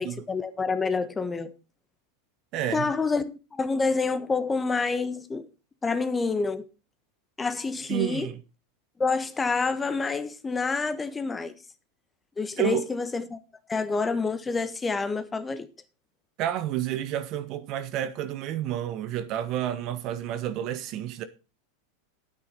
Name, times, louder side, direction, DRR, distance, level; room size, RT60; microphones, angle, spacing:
voice 1, 0.0-1.5 2.7-5.5 5.8-6.7 7.4-8.3 9.0-11.5 12.4-13.4 13.7-15.7, left 4 dB, 15° left, 1.2 m, -28 dB
voice 2, 2.5-2.9 7.9-8.4 12.6-12.8 16.4-21.2, right 11 dB, 50° right, 1.3 m, -30 dB
9.6 x 8.6 x 5.4 m
hypercardioid pair, 95°, 0 cm